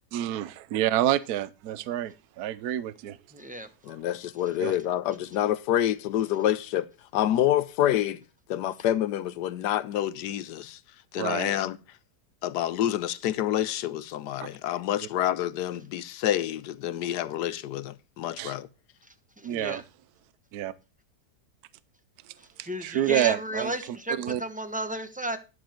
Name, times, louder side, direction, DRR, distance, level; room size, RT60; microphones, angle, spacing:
voice 1, 0.1-3.2 4.6-4.7 11.2-11.6 14.4-14.5 18.4-18.6 19.4-19.8 20.5-20.7 22.6-24.4, right 12 dB, 70° right, 1.2 m, -28 dB
voice 2, 3.3-3.7 19.4-19.8 22.6-25.4, right 1 dB, 5° right, 0.9 m, -33 dB
voice 3, 3.8-6.9 7.1-8.2 8.5-10.8 11.1-11.8 12.4-18.7, left 12 dB, 80° left, 1.3 m, -27 dB
11.5 x 7.3 x 4.4 m
omnidirectional pair, 1.8 m